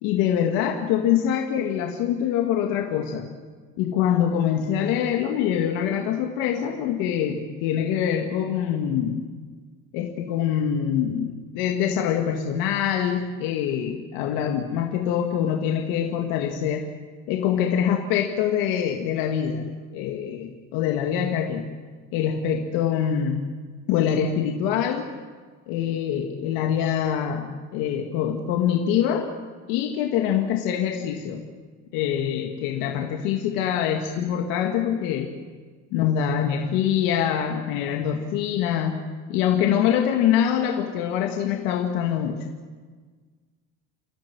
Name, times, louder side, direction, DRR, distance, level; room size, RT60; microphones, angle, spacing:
voice 1, 0.0-3.3 3.8-9.3 9.9-16.9 17.3-19.7 19.9-21.7 22.1-23.5 23.9-25.1 25.7-29.3 29.7-31.5 31.9-35.4 35.9-39.0 39.3-42.4, left 9 dB, 85° left, 2 dB, 2.2 m, -24 dB
29.5 x 14.0 x 9.7 m, 1.5 s
cardioid pair, 150°, 32 cm